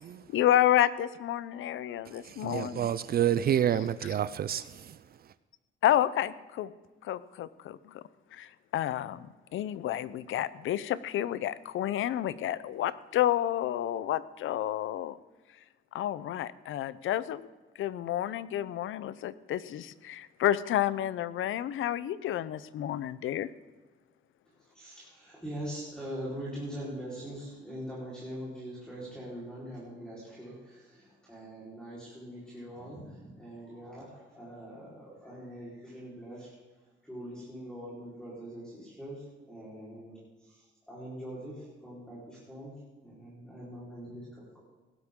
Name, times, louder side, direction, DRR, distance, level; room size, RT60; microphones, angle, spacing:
voice 1, 0.3-2.9 5.8-6.7 7.0-8.0 8.3-15.2 15.9-17.5 17.8-23.5, left 12 dB, 75° left, 0.7 m, -30 dB
voice 2, 2.1-5.0, right 10 dB, 50° right, 0.5 m, -29 dB
voice 3, 24.4-36.5 37.0-42.7 43.0-44.6, equal, 5° left, 4.3 m, -43 dB
17.5 x 12.0 x 3.8 m
cardioid pair, 140°, 21 cm